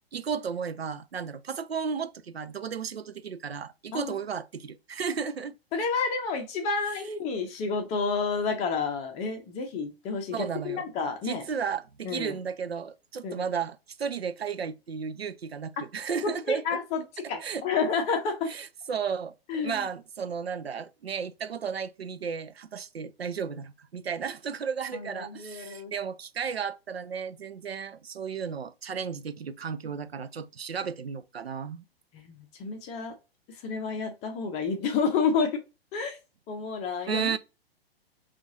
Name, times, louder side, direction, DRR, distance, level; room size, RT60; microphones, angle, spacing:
voice 1, 0.0-5.6 10.3-10.9 11.2-16.8 17.4-17.6 18.5-31.8 37.1-37.4, right 6 dB, 80° right, 0.5 m, -34 dB
voice 2, 5.7-11.5 12.0-12.4 13.2-13.5 15.8-15.9 16.2-18.5 19.5-19.8 24.9-25.9 32.1-33.1 33.5-35.6 35.9-36.2 36.5-37.3, left 5 dB, 20° left, 0.8 m, -30 dB
5.6 x 2.5 x 2.7 m
figure-of-eight pair, 115°, 31 cm